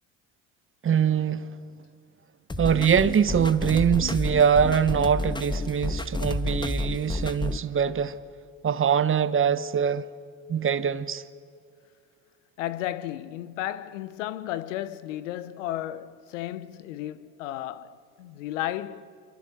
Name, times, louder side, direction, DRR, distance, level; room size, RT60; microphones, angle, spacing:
voice 1, 0.8-1.5 2.6-8.2 8.6-10.1 10.5-11.2, right 7 dB, 35° right, 1.2 m, -23 dB
sound 1, 2.5-7.6, left 2 dB, 10° left, 1.4 m, -30 dB
voice 2, 12.6-19.1, left 13 dB, 85° left, 1.0 m, -33 dB
29.0 x 24.5 x 6.8 m
hypercardioid pair, 70°, 37 cm